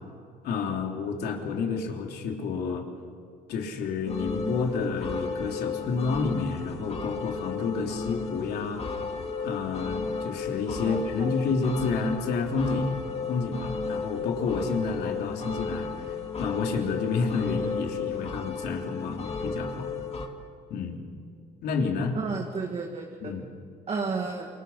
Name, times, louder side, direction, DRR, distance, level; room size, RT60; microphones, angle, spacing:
voice 1, 0.4-2.8 3.5-8.8 9.4-13.0 13.3-20.1 20.7-21.0 21.6-22.2 23.2-23.4, left 4 dB, 75° left, 1 dB, 3.5 m, -30 dB
sound 1, 4.1-20.3, left 5 dB, 40° left, 2.2 m, -34 dB
voice 2, 10.9-11.4 22.1-23.1 23.9-24.5, right 4 dB, 40° right, 1 dB, 2.3 m, -32 dB
28.0 x 24.0 x 5.8 m, 2.2 s
cardioid pair, 110°, 17 cm